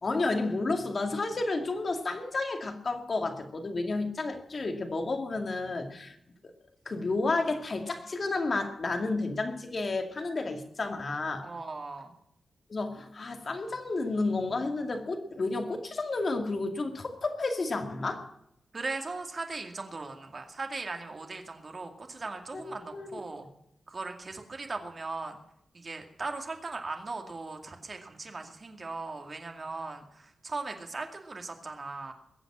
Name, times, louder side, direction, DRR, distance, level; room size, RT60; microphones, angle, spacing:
voice 1, 0.0-6.2 6.9-11.5 12.7-18.3 22.5-23.2, left 3 dB, 40° left, 4 dB, 2.4 m, -31 dB
voice 2, 11.4-12.1 18.7-23.5 23.9-25.4 25.7-32.1, right 3 dB, 35° right, 4 dB, 2.3 m, -38 dB
21.5 x 7.8 x 7.5 m, 0.76 s
wide cardioid pair, 135°, 0 cm